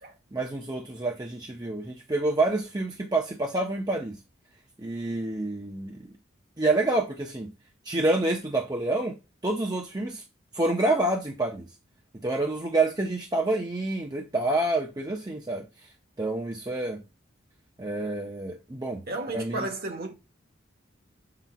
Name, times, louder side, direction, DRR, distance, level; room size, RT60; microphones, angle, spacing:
voice 1, 0.3-4.2 4.8-6.1 6.6-7.5 7.8-9.2 9.4-10.2 10.5-11.7 12.2-15.9 16.2-17.0 17.8-19.0 19.3-19.7, right 2 dB, 20° right, 0.7 m, -28 dB
voice 2, 19.1-20.1, right 2 dB, 50° right, 1.1 m, -33 dB
7.9 x 5.8 x 2.3 m
head